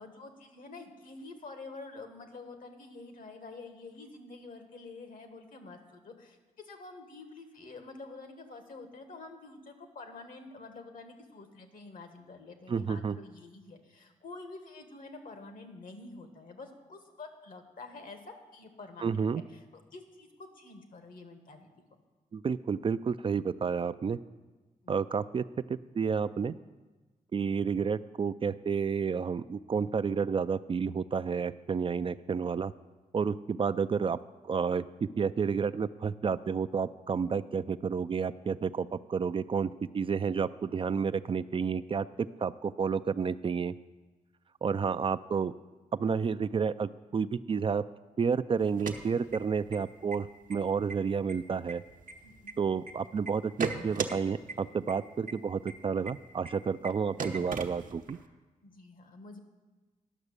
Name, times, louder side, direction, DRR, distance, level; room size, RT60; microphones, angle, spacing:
voice 1, 0.0-6.4 6.6-18.2 18.5-20.3 20.5-21.7 52.2-52.5 58.6-59.4, left 3 dB, 65° left, 6 dB, 1.5 m, -48 dB
voice 2, 12.7-13.2 19.0-19.4 22.3-24.2 24.9-25.4 25.7-26.6 27.3-32.7 33.1-34.2 34.4-39.7 39.9-42.1 42.4-43.7 44.6-45.5 45.9-47.8 48.2-51.8 52.6-58.2, right 6 dB, 35° right, 13 dB, 0.3 m, -30 dB
sound 1, 48.6-49.8 50.1-50.2 50.5-50.9 51.3-52.9 53.3-54.1 54.5-54.6 54.9-55.0 55.3-55.4 55.7-55.8 56.1-56.2 56.4-56.5 56.8-56.9 57.2-58.2, right 5 dB, 65° right, 0.9 m, -36 dB
11.0 x 6.1 x 6.7 m, 1.2 s
cardioid pair, 55°, 15 cm